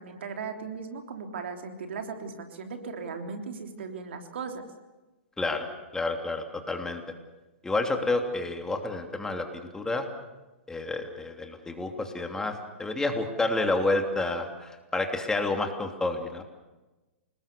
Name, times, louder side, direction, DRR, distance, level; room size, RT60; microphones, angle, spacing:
voice 1, 0.0-4.6, right 5 dB, 70° right, 4 dB, 3.3 m, -37 dB
voice 2, 5.9-7.0 7.6-9.5 9.7-10.1 10.7-16.4, left 2 dB, 10° left, 4 dB, 3.0 m, -29 dB
29.0 x 19.5 x 6.9 m, 1.1 s
hypercardioid pair, 115°, 6 cm